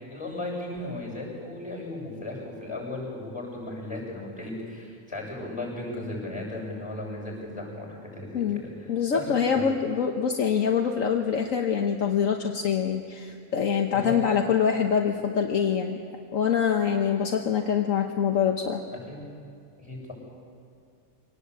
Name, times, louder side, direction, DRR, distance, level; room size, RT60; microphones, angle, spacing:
voice 1, 0.1-9.6 13.9-14.2 18.9-19.3 19.8-20.1, left 2 dB, 20° left, -1 dB, 7.4 m, -36 dB
voice 2, 8.9-16.0 16.3-18.8, left 7 dB, 65° left, 3 dB, 1.4 m, -25 dB
24.5 x 18.5 x 8.4 m, 2.4 s
omnidirectional pair, 1.5 m